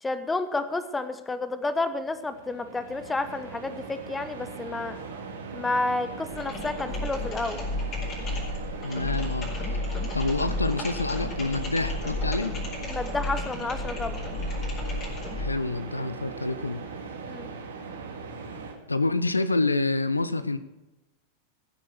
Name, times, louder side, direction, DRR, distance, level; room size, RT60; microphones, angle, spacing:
voice 1, 0.0-5.0 5.5-7.6 12.9-14.2 17.3-17.5, left 2 dB, 10° left, 12 dB, 1.0 m, -30 dB
sound 1, 2.1-18.7, right 4 dB, 65° right, 2.2 m, -40 dB
sound 2, 6.3-15.6, left 2 dB, 30° left, 4.6 m, -32 dB
voice 2, 8.8-9.5 10.1-12.5 15.3-16.8 18.9-20.6, left 2 dB, 80° left, 15 dB, 0.6 m, -27 dB
15.0 x 7.9 x 6.2 m, 1.0 s
figure-of-eight pair, 90°, 0 cm